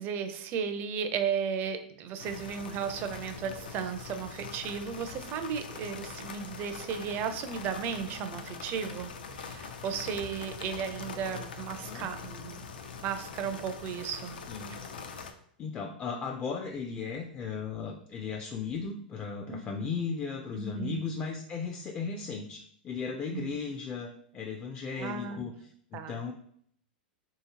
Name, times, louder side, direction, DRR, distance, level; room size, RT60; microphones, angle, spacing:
voice 1, 0.0-9.1 9.5-12.6 13.0-14.4 19.5-19.9 20.6-21.0 23.3-23.6 25.0-25.4 25.9-26.2, right 7 dB, 40° right, 8 dB, 0.4 m, -35 dB
sound 1, 2.2-15.3, left 5 dB, 85° left, 0.4 m, -43 dB
voice 2, 11.8-12.1 14.5-14.8 15.6-25.5 25.9-26.3, left 5 dB, 25° left, 2 dB, 0.4 m, -36 dB
3.2 x 2.8 x 2.8 m, 0.63 s
hypercardioid pair, 115°, 5 cm